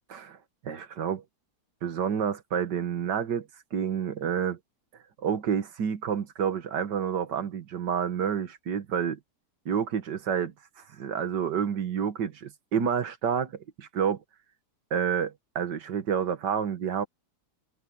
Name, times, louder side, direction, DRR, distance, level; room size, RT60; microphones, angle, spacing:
voice 1, 0.6-1.2 1.8-4.6 5.2-9.2 9.7-14.2 14.9-17.1, right 8 dB, 90° right, 2.0 m, -29 dB
omnidirectional pair, 1.8 m